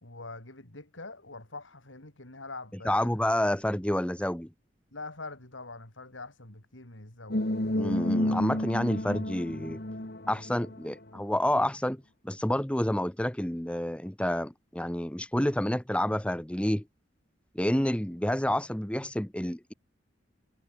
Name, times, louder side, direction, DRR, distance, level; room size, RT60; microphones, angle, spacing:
voice 1, 0.0-3.1 4.9-7.4, left 3 dB, 80° left, 4.5 m, -44 dB
voice 2, 2.8-4.5 7.8-9.8 10.3-16.8 17.5-19.7, left 1 dB, 5° left, 0.9 m, -29 dB
sound 1, 7.3-11.2, left 1 dB, 55° left, 2.3 m, -31 dB
head